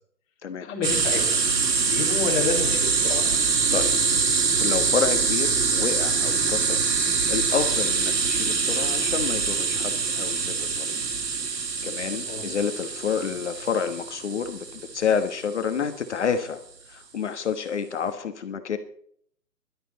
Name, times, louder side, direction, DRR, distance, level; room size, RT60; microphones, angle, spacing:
voice 1, 0.6-1.4 1.8-3.3 12.3-12.4, left 5 dB, 15° left, -1 dB, 2.8 m, -29 dB
sound 1, 0.8-15.4, right 5 dB, 85° right, 2.3 m, -24 dB
voice 2, 4.5-6.8 7.3-11.0 11.8-16.6 16.9-18.8, left 6 dB, 45° left, 8 dB, 1.3 m, -29 dB
17.0 x 12.0 x 4.1 m, 0.64 s
hypercardioid pair, 160°, 49 cm